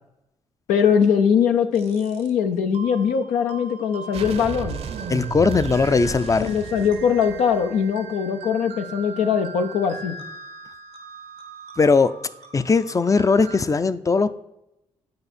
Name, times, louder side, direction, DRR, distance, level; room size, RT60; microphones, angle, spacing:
voice 1, 0.7-4.8 6.4-10.1, left 7 dB, 85° left, 6 dB, 0.6 m, -21 dB
sound 1, 1.8-2.3 2.7-13.6, right 4 dB, 90° right, 1.1 m, -41 dB
sound 2, 4.1-7.8, right 6 dB, 55° right, 0.7 m, -33 dB
voice 2, 5.1-6.5 11.8-12.1 12.5-14.3, left 4 dB, 25° left, 14 dB, 0.5 m, -19 dB
9.5 x 4.9 x 4.2 m, 0.89 s
supercardioid pair, 50°, 13 cm